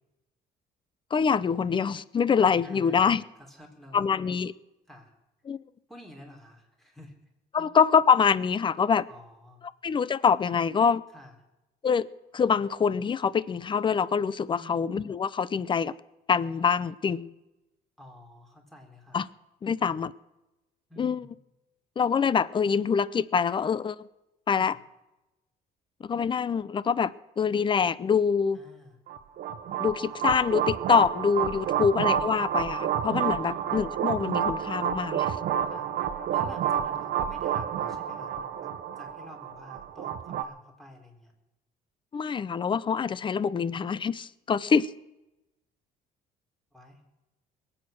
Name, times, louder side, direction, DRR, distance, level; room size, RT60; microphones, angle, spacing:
voice 1, 1.1-3.2 3.9-4.5 5.5-5.6 7.5-9.1 9.8-11.0 11.8-12.1 12.3-15.9 16.3-17.3 19.1-19.3 19.6-20.1 21.0-21.3 22.0-24.0 24.5-24.8 26.0-28.6 29.8-35.4 42.1-44.9, left 6 dB, 30° left, 0.6 m, -25 dB
voice 2, 2.6-4.1 4.9-5.1 5.9-7.2 7.6-7.7 9.1-9.6 11.1-11.3 14.6-14.9 18.0-19.2 20.9-21.3 24.6-24.8 28.5-29.0 31.6-31.9 33.4-33.8 35.7-35.9 36.3-38.7 39.0-41.3 46.7-47.0, left 1 dB, ahead, 3.7 m, -49 dB
sound 1, 29.1-40.4, right 9 dB, 65° right, 0.9 m, -29 dB
21.0 x 8.7 x 6.5 m
cardioid pair, 110°, 17 cm